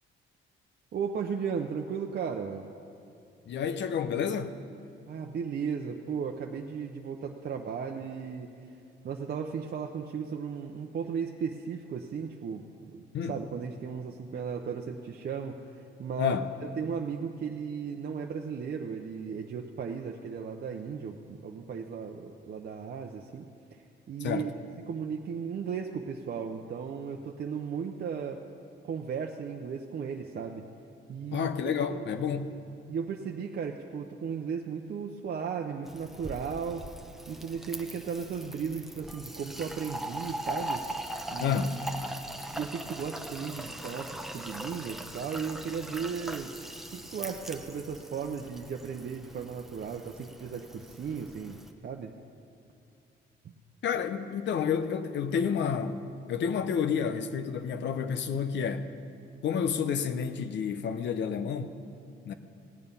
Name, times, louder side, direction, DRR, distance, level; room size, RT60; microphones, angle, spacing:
voice 1, 0.9-2.7 5.1-8.5 9.0-16.4 16.8-24.5 24.9-28.4 28.8-30.6 31.1-31.5 31.8-32.1 32.9-36.9 37.3-40.8 41.3-41.7 42.5-46.5 46.9-51.6 51.8-52.1, right 6 dB, 55° right, 0.7 m, -36 dB
voice 2, 3.5-4.5 13.1-13.4 16.2-16.5 24.2-24.5 31.3-32.5 41.4-41.8 53.8-56.0 56.3-58.9 59.4-61.7 62.3-62.4, left 7 dB, 65° left, 0.8 m, -30 dB
Fill (with liquid), 35.9-51.7, right 1 dB, ahead, 0.8 m, -41 dB
17.0 x 8.8 x 5.5 m
cardioid pair, 90°, 20 cm